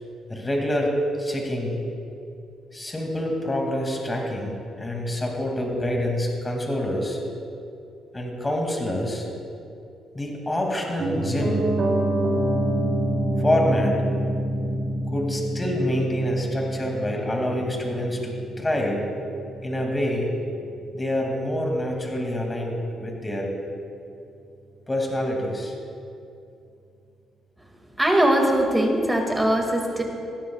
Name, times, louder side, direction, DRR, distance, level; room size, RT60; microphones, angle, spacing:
voice 1, 0.3-1.9 2.7-7.2 8.1-9.3 10.1-11.7 13.4-14.0 15.1-19.1 19.6-20.4 20.9-23.5 24.9-25.7, left 1 dB, 20° left, 0 dB, 2.3 m, -26 dB
Piano, 11.0-21.0 21.3-21.4, right 1 dB, 45° right, 3.2 m, -27 dB
voice 2, 28.0-30.0, right 1 dB, 10° right, 1 dB, 2.0 m, -21 dB
17.0 x 13.5 x 2.3 m, 2.6 s
cardioid pair, 90°, 0 cm